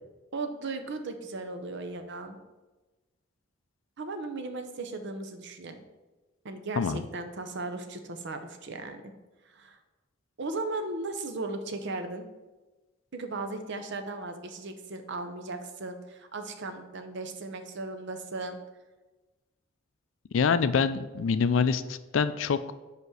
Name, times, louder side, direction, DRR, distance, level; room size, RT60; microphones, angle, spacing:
voice 1, 0.3-2.4 4.0-5.8 6.4-9.0 9.5-9.8 10.4-12.3 13.1-18.6, right 3 dB, 60° right, 7 dB, 0.7 m, -36 dB
voice 2, 20.3-22.7, left 5 dB, 70° left, 13 dB, 0.4 m, -25 dB
5.5 x 5.0 x 6.2 m, 1.2 s
head